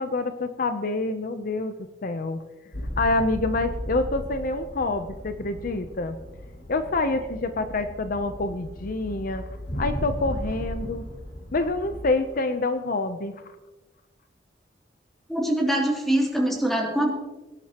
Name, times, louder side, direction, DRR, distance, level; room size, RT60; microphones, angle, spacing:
voice 1, 0.0-1.7 2.0-2.4 3.0-6.2 6.7-9.5 9.8-11.0 11.5-13.3, left 2 dB, 50° left, 9 dB, 0.7 m, -27 dB
sound 1, 2.7-12.0, equal, 70° left, 5.5 m, -36 dB
voice 2, 15.3-17.1, right 1 dB, ahead, -2 dB, 2.8 m, -23 dB
22.0 x 10.5 x 3.0 m, 1.1 s
head